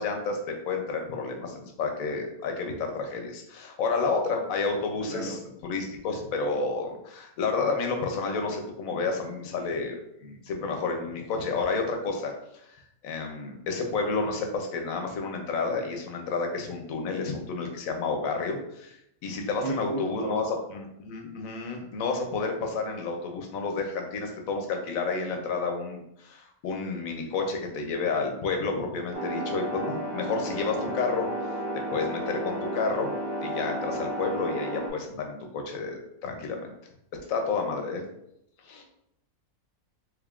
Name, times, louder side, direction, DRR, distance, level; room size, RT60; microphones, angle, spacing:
voice 1, 0.0-12.7 13.0-31.3 31.7-33.2 33.4-36.7 37.3-38.0 38.6-38.8, left 4 dB, 75° left, 3 dB, 1.0 m, -30 dB
voice 2, 5.0-5.4 19.6-20.4, right 2 dB, 60° right, -2 dB, 0.7 m, -34 dB
sound 1, 29.1-34.9, right 1 dB, 45° left, 0.3 m, -32 dB
3.5 x 3.3 x 2.4 m, 0.77 s
omnidirectional pair, 1.5 m